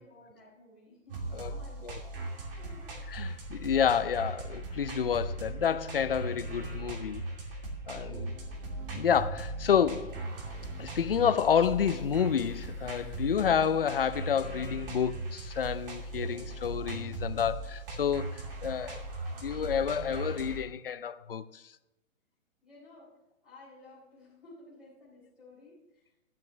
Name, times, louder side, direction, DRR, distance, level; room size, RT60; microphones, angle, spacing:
voice 1, 0.0-3.0 22.6-23.2 23.4-26.2, left 2 dB, ahead, 3.9 m, -55 dB
sound 1, 1.1-20.6, right 2 dB, 40° right, 2.7 m, -39 dB
voice 2, 3.1-7.2 7.9-8.4 8.9-10.2 10.8-18.3 18.6-19.0 19.4-21.6, left 8 dB, 45° left, 0.5 m, -29 dB
12.0 x 10.5 x 3.2 m
hypercardioid pair, 180°, 40 cm